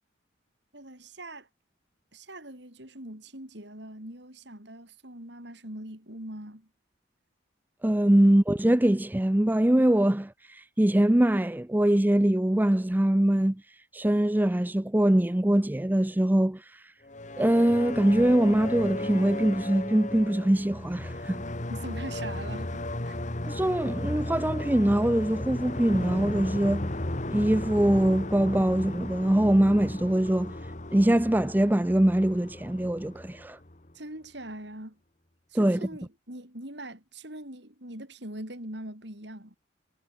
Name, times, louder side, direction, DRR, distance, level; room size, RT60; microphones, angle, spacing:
voice 1, 0.7-1.5 2.1-6.7 21.7-22.7 23.0-23.2 33.9-35.0 35.5-39.6, right 1 dB, 60° right, 6.9 m, -42 dB
voice 2, 7.8-13.6 13.9-16.8 17.4-21.4 23.5-26.9 27.3-30.6 30.9-33.6 35.5-35.9, right 1 dB, 10° right, 0.5 m, -23 dB
sound 1, 17.0-33.9, left 1 dB, 40° left, 1.8 m, -35 dB
head